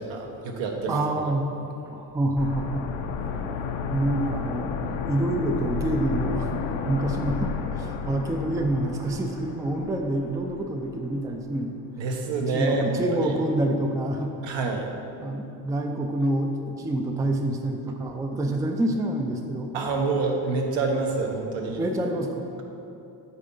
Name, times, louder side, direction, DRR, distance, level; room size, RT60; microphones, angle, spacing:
voice 1, 0.0-1.0 12.0-13.3 14.4-14.9 19.7-21.8, right 3 dB, 70° right, 2 dB, 1.2 m, -27 dB
voice 2, 0.9-1.5 1.8-2.9 3.3-3.6 3.9-4.7 5.1-6.5 6.9-11.7 12.5-14.3 15.2-19.7 21.8-22.6, right 1 dB, 10° right, 3 dB, 0.4 m, -27 dB
sound 1, 2.4-11.1 11.4-11.5, left 6 dB, 80° left, 0.8 m, -32 dB
8.8 x 4.2 x 5.4 m, 2.8 s
cardioid pair, 110°, 46 cm